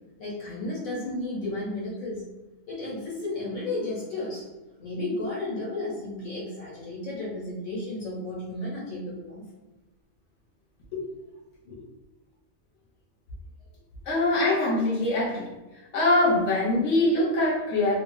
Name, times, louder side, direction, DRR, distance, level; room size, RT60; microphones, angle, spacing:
voice 1, 0.2-2.2 2.7-4.4 4.8-9.4 10.9-11.1 11.6-11.8, left 2 dB, 80° left, -6 dB, 1.6 m, -33 dB
voice 2, 14.1-15.5 15.9-18.0, left 2 dB, 60° left, -5 dB, 1.0 m, -23 dB
3.0 x 2.4 x 2.3 m, 1.1 s
omnidirectional pair, 1.4 m